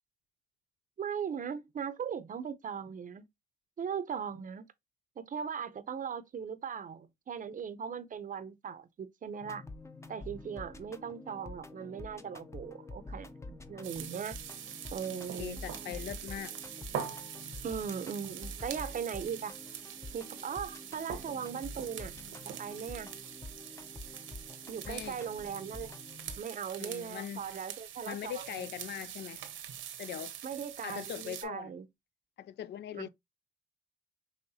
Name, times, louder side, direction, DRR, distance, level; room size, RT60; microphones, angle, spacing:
voice 1, 1.0-3.2 3.8-4.7 5.2-9.6 10.1-14.4 14.9-16.0 17.6-19.5 20.1-22.1 22.6-23.1 24.7-25.9 26.4-28.7 30.4-31.9 32.9-33.1, right 7 dB, 40° right, 0.7 m, -39 dB
sound 1, 9.4-26.4, left 2 dB, 15° left, 0.6 m, -47 dB
sound 2, 13.8-31.4, right 9 dB, 80° right, 1.0 m, -44 dB
voice 2, 15.1-16.6 24.9-25.2 26.8-27.6 28.1-29.4 30.0-30.3 30.8-31.7 32.4-33.1, left 11 dB, 60° left, 0.4 m, -41 dB
5.6 x 3.1 x 2.7 m
cardioid pair, 90°, 20 cm